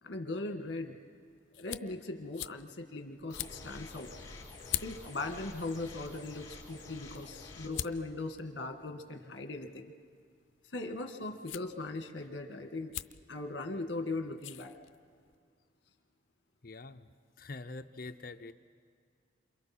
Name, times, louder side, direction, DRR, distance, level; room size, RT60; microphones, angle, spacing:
voice 1, 0.0-0.9 1.6-4.1 4.8-9.9 10.7-12.9 13.3-14.7, left 2 dB, 65° left, 6 dB, 1.6 m, -39 dB
sound 1, 0.6-15.4, left 11 dB, 85° left, 0.5 m, -46 dB
sound 2, 3.3-7.7, left 3 dB, 20° left, 5.3 m, -49 dB
voice 2, 16.6-17.1 17.4-18.5, left 3 dB, 50° left, 8 dB, 0.8 m, -45 dB
28.5 x 27.5 x 4.4 m, 2.1 s
head